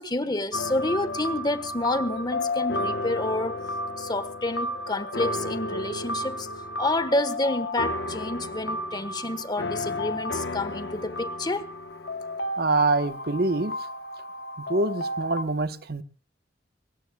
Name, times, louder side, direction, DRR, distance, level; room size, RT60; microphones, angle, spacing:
voice 1, 0.0-3.6 4.0-6.5 6.8-11.7, left 2 dB, 25° left, 1.3 m, -29 dB
sound 1, 0.5-15.4, left 1 dB, 75° left, 1.1 m, -32 dB
voice 2, 12.6-13.8 14.6-16.0, right 3 dB, 60° right, 1.0 m, -25 dB
23.5 x 20.0 x 2.3 m
head